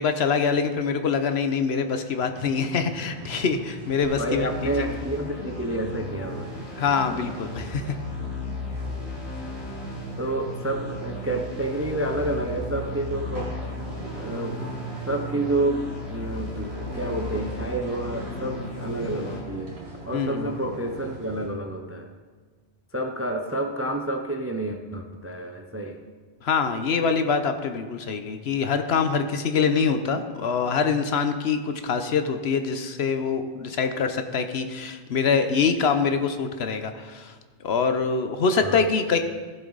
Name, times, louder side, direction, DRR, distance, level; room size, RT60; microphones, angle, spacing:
voice 1, 0.0-4.5 6.8-7.9 20.1-20.5 26.4-37.3 37.6-39.2, left 5 dB, 65° left, 8 dB, 1.0 m, -24 dB
sound 1, 1.6-21.5, right 3 dB, 65° right, 1.8 m, -39 dB
sound 2, 4.0-19.4, left 3 dB, 90° left, 2.7 m, -36 dB
voice 2, 4.1-6.5 10.2-13.5 14.1-14.8 15.1-19.7 20.1-22.1 22.9-26.0 38.6-38.8, right 1 dB, 20° right, 4 dB, 0.4 m, -29 dB
15.0 x 7.3 x 4.0 m, 1.4 s
omnidirectional pair, 1.2 m